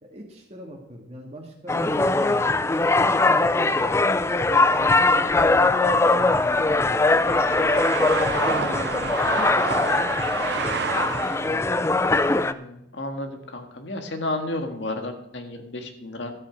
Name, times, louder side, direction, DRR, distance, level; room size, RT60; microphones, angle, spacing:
voice 1, 0.0-4.0 4.3-7.8 8.4-11.8, equal, 35° right, 0 dB, 1.8 m, -42 dB
sound 1, 1.7-12.5, left 3 dB, 15° left, 0.3 m, -21 dB
sound 2, 4.9-11.6, right 6 dB, 70° right, 0.5 m, -31 dB
voice 2, 12.4-16.3, left 2 dB, 85° left, 4 dB, 1.7 m, -32 dB
13.0 x 8.7 x 5.1 m, 0.81 s
head